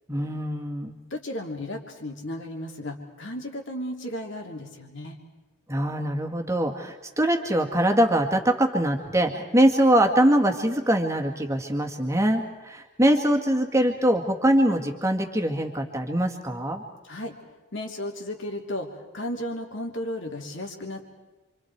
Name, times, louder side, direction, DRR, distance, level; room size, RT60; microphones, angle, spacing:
voice 1, 0.1-0.9 5.7-16.8, right 1 dB, 15° right, 2 dB, 1.9 m, -23 dB
voice 2, 1.1-5.2 17.0-17.3 17.7-21.0, left 1 dB, 55° left, 2 dB, 2.9 m, -34 dB
28.5 x 25.5 x 4.7 m, 1.2 s
head